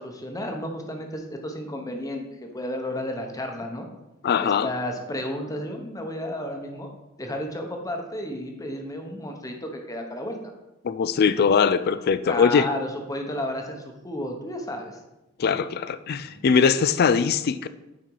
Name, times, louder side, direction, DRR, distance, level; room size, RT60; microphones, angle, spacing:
voice 1, 0.0-3.9 4.4-6.9 7.2-10.4 12.2-15.0 16.3-16.5, left 1 dB, 15° left, 3 dB, 0.9 m, -32 dB
voice 2, 4.2-4.7 10.8-12.7 15.4-17.7, left 6 dB, 50° left, 13 dB, 0.4 m, -21 dB
8.9 x 4.4 x 4.7 m, 0.96 s
head